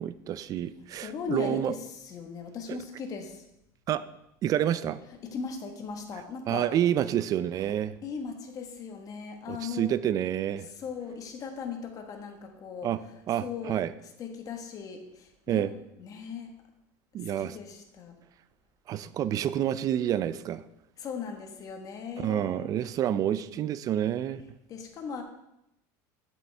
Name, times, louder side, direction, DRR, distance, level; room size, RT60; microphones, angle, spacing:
voice 1, 0.0-1.7 2.7-2.8 3.9-4.1 4.4-5.0 6.5-8.0 9.5-10.7 12.8-13.0 13.3-13.9 15.5-15.7 17.1-17.6 18.9-20.6 22.2-24.4, right 11 dB, 35° right, 15 dB, 0.4 m, -28 dB
voice 2, 1.0-3.4 5.2-6.7 7.6-7.7 8.0-10.0 10.6-12.9 13.4-13.8 14.2-15.7 16.0-16.6 17.2-18.2 21.0-22.7 24.7-25.2, left 6 dB, 40° left, 4 dB, 1.4 m, -38 dB
8.1 x 7.7 x 3.4 m, 0.84 s
supercardioid pair, 125°, 10 cm